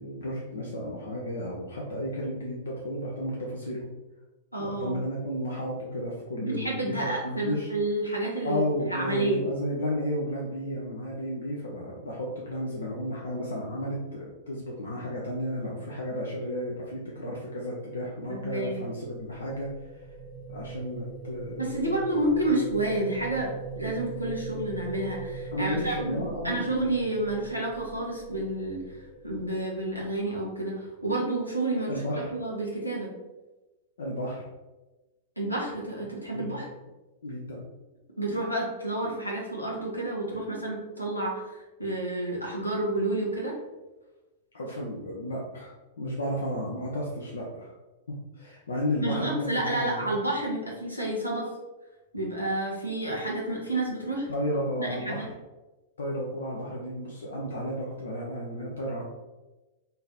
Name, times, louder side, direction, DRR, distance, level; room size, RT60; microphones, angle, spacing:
voice 1, 0.0-3.9 4.6-7.7 8.4-20.1 20.5-21.9 25.5-26.7 31.9-32.3 34.0-34.5 36.3-36.6 37.2-37.6 44.5-47.7 48.1-50.1 54.3-55.3 56.0-59.0, equal, 65° left, -3 dB, 0.7 m, -33 dB
voice 2, 4.5-5.0 6.4-9.4 18.3-18.8 21.6-28.8 29.2-33.1 35.4-36.7 38.2-43.5 49.0-51.5 52.1-54.3 54.8-55.3, right 1 dB, 85° left, -2 dB, 1.1 m, -30 dB
sound 1, 18.3-30.5, right 3 dB, 15° right, 0.6 m, -41 dB
3.9 x 2.8 x 4.0 m, 1.1 s
figure-of-eight pair, 95°, 0 cm